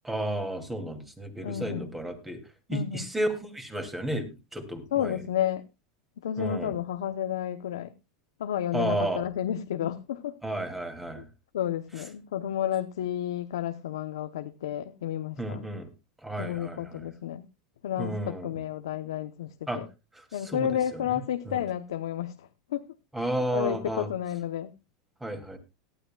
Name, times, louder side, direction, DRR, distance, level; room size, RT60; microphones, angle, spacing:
voice 1, 0.0-2.4 2.7-4.3 4.5-5.2 6.4-6.8 8.7-9.2 10.4-11.2 15.4-15.9 16.2-17.0 18.0-18.5 19.7-19.8 20.3-21.6 23.1-24.1 25.2-25.6, right 1 dB, 10° right, 2.7 m, -32 dB
voice 2, 1.4-1.9 2.7-3.0 4.9-5.7 6.2-7.9 8.4-10.3 11.1-11.2 11.5-15.6 16.4-17.4 17.8-19.9 20.3-22.9 23.5-24.7, left 10 dB, 90° left, 0.8 m, -31 dB
18.0 x 12.0 x 2.3 m
supercardioid pair, 125°, 2 cm